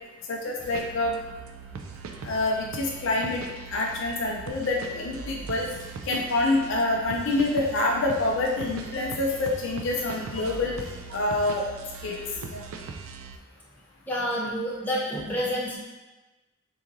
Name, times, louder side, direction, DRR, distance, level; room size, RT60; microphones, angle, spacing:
voice 1, 0.3-1.2 2.2-3.4 3.7-5.7 6.0-10.7 11.1-11.6 12.0-12.2 12.5-12.6, left 2 dB, 60° left, -1 dB, 0.4 m, -26 dB
sound 1, 0.6-13.4, right 5 dB, 65° right, 0.3 m, -40 dB
voice 2, 14.1-15.8, equal, 10° left, -7 dB, 0.7 m, -29 dB
3.7 x 3.0 x 2.5 m, 1.1 s
head